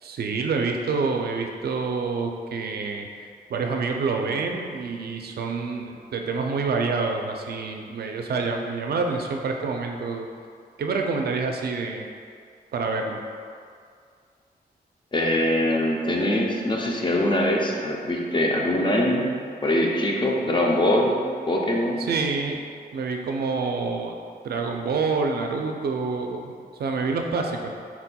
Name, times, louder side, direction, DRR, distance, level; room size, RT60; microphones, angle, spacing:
voice 1, 0.0-3.1 3.5-10.3 10.8-12.1 12.7-13.2 22.0-22.6 22.9-24.2 24.4-27.8, right 4 dB, 75° right, 3 dB, 0.4 m, -27 dB
voice 2, 15.1-19.3 19.6-21.1 21.5-22.0, left 1 dB, 30° left, -1 dB, 0.6 m, -23 dB
4.2 x 4.2 x 2.2 m, 2.2 s
wide cardioid pair, 90°, 17 cm